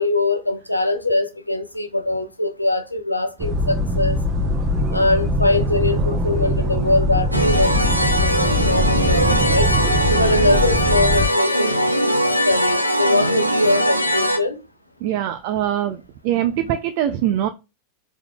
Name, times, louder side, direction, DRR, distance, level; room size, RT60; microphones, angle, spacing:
voice 1, 0.0-4.2 4.9-9.7 10.1-11.7 12.4-14.6 16.7-16.8, left 2 dB, 85° left, 0.7 m, -22 dB
sound 1, 3.4-11.3, equal, 30° right, 0.9 m, -21 dB
sound 2, 7.3-14.4, equal, 90° right, 0.6 m, -21 dB
voice 2, 15.0-16.0 16.2-17.5, right 11 dB, 45° right, 0.4 m, -22 dB
4.7 x 3.5 x 2.3 m
figure-of-eight pair, 90°, 0 cm